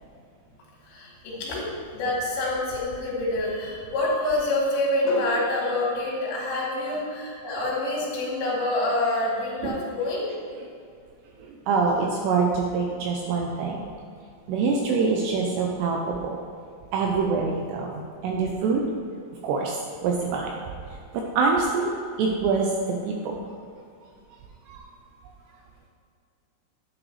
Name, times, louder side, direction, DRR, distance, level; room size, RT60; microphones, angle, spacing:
voice 1, 0.9-1.7 1.9-10.2, left 2 dB, 70° left, -4 dB, 4.3 m, -26 dB
voice 2, 11.4-13.9 14.5-16.4 16.9-18.8 19.4-20.6 21.1-21.9 22.2-22.7 23.0-23.3 24.7-24.8, right 4 dB, 80° right, 0 dB, 2.6 m, -25 dB
10.5 x 8.9 x 3.3 m, 2.4 s
omnidirectional pair, 5.5 m